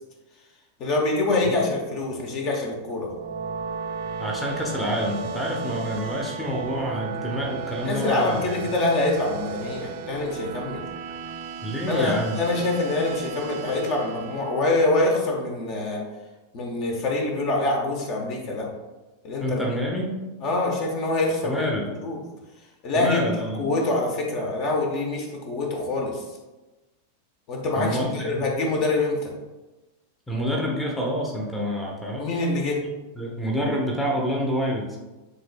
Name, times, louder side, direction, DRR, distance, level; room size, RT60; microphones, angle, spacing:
voice 1, 0.8-3.1 7.8-10.8 11.9-16.0 16.5-18.7 19.2-19.6 20.4-21.7 22.0-22.2 22.8-23.3 23.6-26.2 27.5-29.3 32.2-32.8, left 2 dB, 40° left, 0 dB, 1.0 m, -25 dB
sound 1, 2.9-15.3, right 6 dB, 45° right, 0.5 m, -35 dB
voice 2, 4.2-8.6 11.6-12.4 19.4-20.1 21.4-21.9 22.9-23.6 27.7-28.5 30.3-32.4 32.8-32.9 33.2-35.0, equal, 5° left, -2 dB, 0.8 m, -28 dB
7.6 x 3.1 x 2.2 m, 1.1 s
figure-of-eight pair, 90°, 0 cm